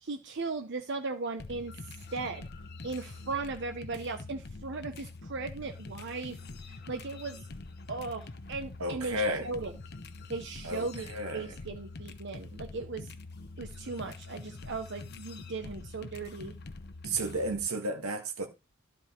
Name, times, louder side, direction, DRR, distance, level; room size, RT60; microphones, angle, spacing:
voice 1, 0.0-1.7 2.1-2.5 2.8-6.4 6.9-7.4 7.9-9.7 10.3-11.1 11.3-13.1 13.6-16.6, right 3 dB, 55° right, 0.7 m, -37 dB
sound 1, 1.4-17.7, left 3 dB, 50° left, 0.9 m, -45 dB
voice 2, 8.8-9.5 10.6-11.5 17.0-18.5, right 1 dB, 90° right, 1.7 m, -33 dB
12.0 x 5.2 x 4.4 m
head